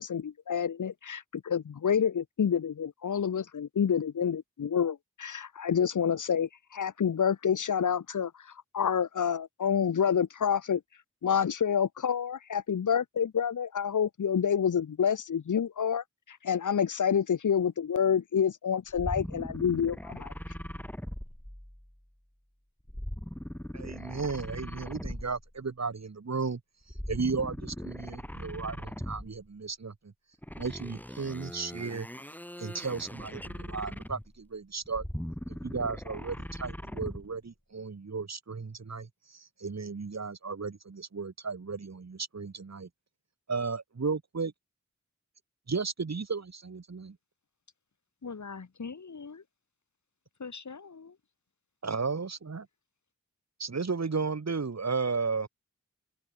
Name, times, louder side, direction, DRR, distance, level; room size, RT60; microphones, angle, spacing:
voice 1, 0.0-8.3 8.7-10.8 11.2-20.3, left 7 dB, 90° left, 1.4 m, -28 dB
sound 1, 18.9-22.0 22.9-25.6 26.9-29.5 30.4-34.4 34.8-37.3, equal, 5° left, 5.0 m, -40 dB
voice 2, 23.7-26.6 27.1-29.9 30.6-32.1 32.6-35.0 35.6-42.9 43.5-44.5 45.7-47.2 51.8-52.7 53.6-55.5, right 4 dB, 60° right, 3.9 m, -34 dB
voice 3, 48.2-49.4 50.4-51.2, left 5 dB, 70° left, 6.4 m, -42 dB
cardioid pair, 45°, 30 cm